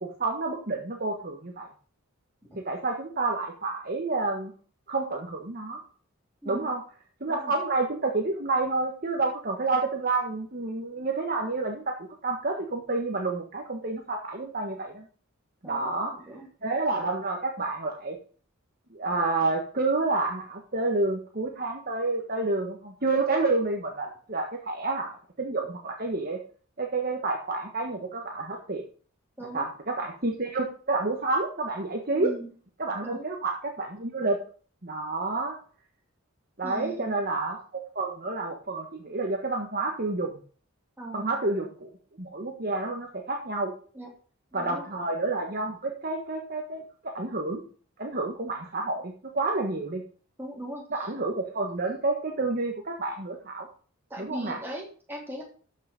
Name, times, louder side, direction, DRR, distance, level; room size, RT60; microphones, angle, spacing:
voice 1, 0.0-1.7 2.6-4.5 4.9-5.8 6.5-6.8 7.2-11.9 12.2-15.1 15.6-16.2 16.6-18.2 18.9-26.4 26.8-28.8 29.5-32.3 32.8-34.4 34.8-35.6 36.6-40.3 41.1-41.9 42.2-43.7 44.5-47.6 48.0-50.0 50.9-53.7 54.2-54.6, right 3 dB, 45° right, 2 dB, 1.4 m, -29 dB
voice 2, 15.6-16.5 29.4-29.7 32.1-32.5 33.0-33.3 36.6-37.1 41.0-41.3 43.9-44.1 44.5-44.9 50.4-51.1 54.1-55.4, right 1 dB, 10° right, -2 dB, 3.3 m, -39 dB
13.0 x 5.8 x 5.2 m, 0.41 s
head